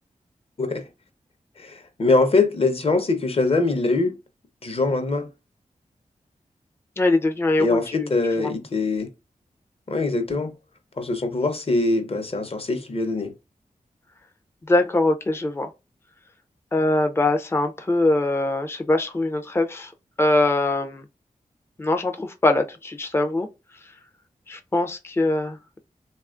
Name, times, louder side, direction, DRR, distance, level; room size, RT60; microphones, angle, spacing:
voice 1, 1.6-4.1 4.6-5.3 7.6-9.1 9.9-10.5 11.0-13.3, left 3 dB, 45° left, 0.7 m, -23 dB
voice 2, 7.0-8.1 8.4-8.5 14.7-15.7 16.7-19.9 20.2-21.0 21.8-23.5 24.5-25.6, left 2 dB, 15° left, 0.4 m, -22 dB
3.0 x 2.3 x 2.4 m
cardioid pair, 45°, 14 cm